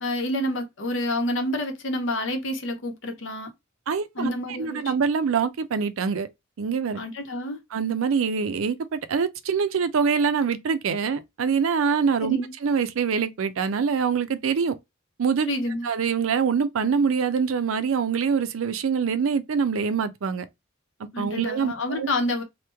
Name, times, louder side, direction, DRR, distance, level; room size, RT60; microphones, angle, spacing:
voice 1, 0.0-3.5 4.2-4.8 6.9-7.6 12.2-12.5 15.4-15.9 21.1-22.4, left 1 dB, 65° left, 0.7 m, -28 dB
voice 2, 3.9-6.3 6.6-7.0 7.7-14.8 15.2-15.5 15.8-20.5 21.2-22.1, right 6 dB, 85° right, 0.5 m, -24 dB
3.0 x 2.1 x 3.3 m
head